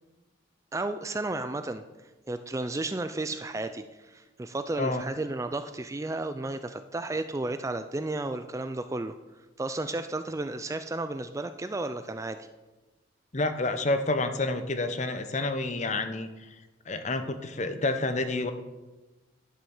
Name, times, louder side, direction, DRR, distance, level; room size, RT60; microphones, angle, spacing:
voice 1, 0.7-1.8 2.3-9.2 9.6-12.5, right 2 dB, 15° right, 10 dB, 0.4 m, -33 dB
voice 2, 13.3-16.5 16.9-18.5, left 2 dB, 35° left, 8 dB, 0.8 m, -29 dB
11.5 x 6.1 x 7.2 m, 1.1 s
head